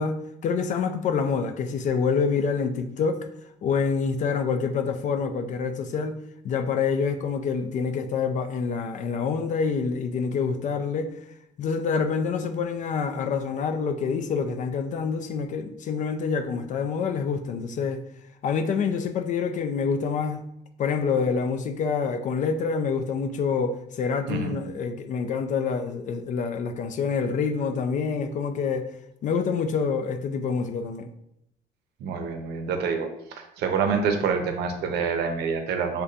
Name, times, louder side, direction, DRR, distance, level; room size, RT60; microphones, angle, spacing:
voice 1, 0.0-3.3 3.6-6.2 6.4-11.1 11.6-18.0 18.4-20.4 20.8-28.9 29.2-31.1, left 5 dB, 45° left, 0.4 m, -27 dB
voice 2, 32.0-36.0, right 5 dB, 75° right, 0.6 m, -27 dB
5.2 x 2.2 x 2.4 m
cardioid pair, 110°, 17 cm